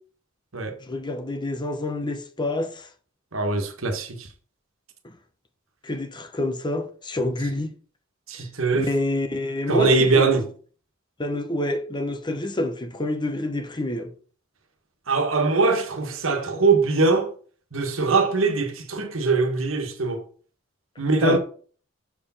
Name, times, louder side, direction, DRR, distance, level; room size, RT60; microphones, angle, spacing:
voice 1, 0.8-2.9 5.0-5.1 5.8-7.7 8.7-10.3 11.2-14.1 21.2-21.4, left 1 dB, 20° left, 0.9 m, -27 dB
voice 2, 3.3-4.3 8.3-8.9 9.7-10.5 15.1-17.3 17.7-20.2 21.0-21.4, right 3 dB, 70° right, 1.6 m, -22 dB
6.9 x 4.8 x 5.6 m
head